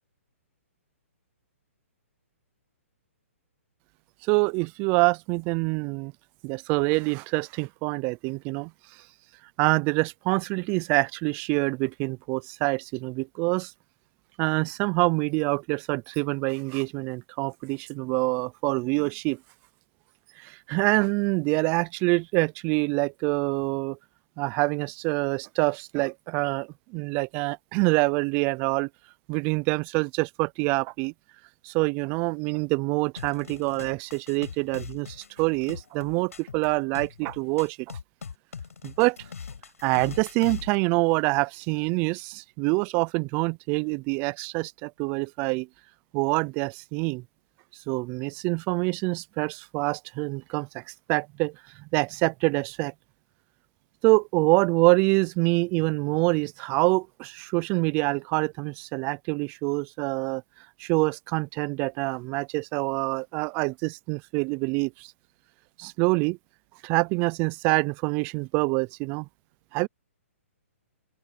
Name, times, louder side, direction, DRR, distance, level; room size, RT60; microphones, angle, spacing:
voice 1, 4.2-6.1 6.4-8.7 9.6-13.7 14.4-19.4 20.4-24.0 24.4-28.9 29.3-31.1 31.6-38.0 38.8-39.2 39.8-45.7 46.1-47.2 47.9-50.8 51.1-52.9 54.0-60.4 60.8-65.1 65.8-66.4 66.8-69.3 69.7-69.9, right 28 dB, 25° right, 0.4 m, -26 dB
sound 1, 33.2-40.8, left 6 dB, 85° left, 7.0 m, -41 dB
open air
hypercardioid pair, 150°, 8 cm